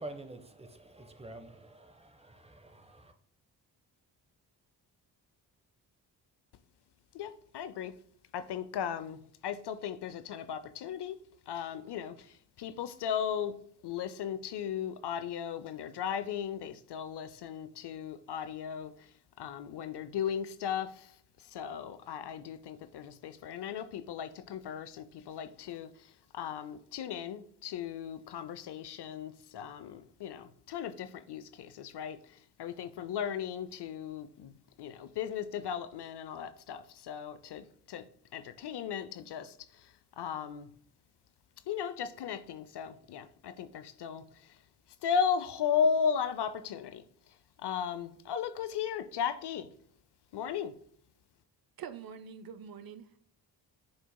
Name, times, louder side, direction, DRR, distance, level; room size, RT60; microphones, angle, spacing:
voice 1, 0.0-3.1, right 2 dB, 15° right, 0.9 m, -47 dB
voice 2, 7.1-7.9 8.3-11.2 11.5-13.6 13.8-19.1 19.4-21.1 21.5-34.5 34.8-40.7 41.7-44.5 45.0-47.0 47.6-49.7 50.3-50.8, left 7 dB, 60° left, 0.6 m, -36 dB
voice 3, 51.8-53.2, right 7 dB, 50° right, 0.6 m, -45 dB
10.5 x 4.5 x 2.2 m
supercardioid pair, 45°, 46 cm